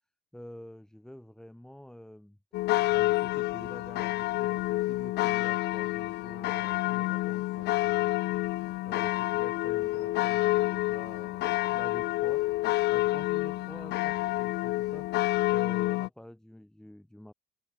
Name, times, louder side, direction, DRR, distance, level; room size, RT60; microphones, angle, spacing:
voice 1, 0.3-2.4 2.9-8.1 8.9-12.4 12.9-15.1 15.5-17.3, left 1 dB, 5° left, 5.9 m, -48 dB
sound 1, 2.5-16.1, left 18 dB, 75° left, 0.6 m, -28 dB
open air
cardioid pair, 110°, 17 cm